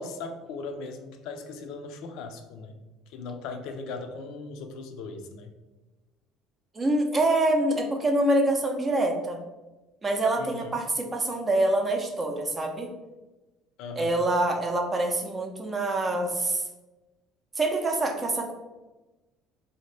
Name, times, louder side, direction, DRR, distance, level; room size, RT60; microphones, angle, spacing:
voice 1, 0.0-2.8 3.1-5.5 10.4-10.8 13.8-14.1, left 3 dB, 70° left, 6 dB, 0.5 m, -38 dB
voice 2, 6.7-9.4 10.0-12.9 14.0-16.6 17.6-18.5, right 1 dB, 20° right, 3 dB, 0.5 m, -25 dB
4.3 x 2.8 x 3.2 m, 1.1 s
cardioid pair, 155°, 0 cm